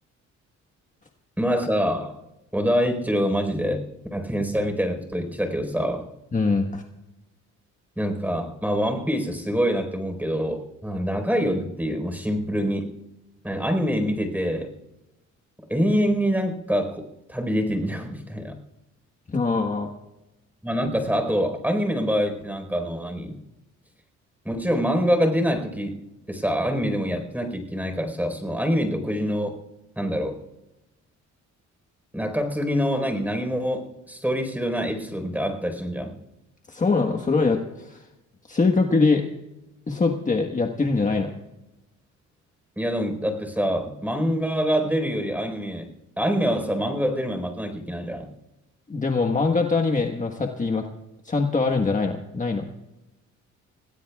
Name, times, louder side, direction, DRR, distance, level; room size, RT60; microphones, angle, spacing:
voice 1, 1.4-2.2 2.5-3.8 4.1-6.1 8.0-12.9 13.4-14.7 15.7-18.6 20.6-23.4 24.4-26.0 26.3-29.6 30.0-30.4 32.1-36.1 42.8-45.9 46.2-48.3, equal, 5° right, 5 dB, 4.5 m, -25 dB
voice 2, 6.3-6.8 19.3-19.9 36.7-38.0 38.5-39.2 39.9-41.4 48.9-50.8 51.2-52.6, left 4 dB, 25° left, 3 dB, 1.4 m, -23 dB
27.5 x 18.5 x 2.4 m, 0.95 s
cardioid pair, 90°, 30 cm